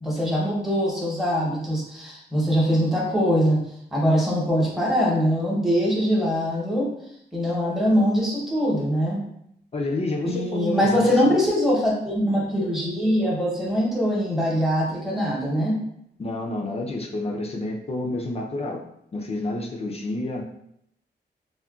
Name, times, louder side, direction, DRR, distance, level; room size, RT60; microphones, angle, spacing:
voice 1, 0.0-3.6 3.9-6.9 7.3-9.2 10.2-15.8, equal, ahead, -4 dB, 0.8 m, -22 dB
voice 2, 9.7-11.4 16.2-18.8 19.1-20.4, left 2 dB, 35° left, 0 dB, 0.4 m, -29 dB
3.6 x 2.2 x 2.3 m, 0.74 s
wide cardioid pair, 110°, 18 cm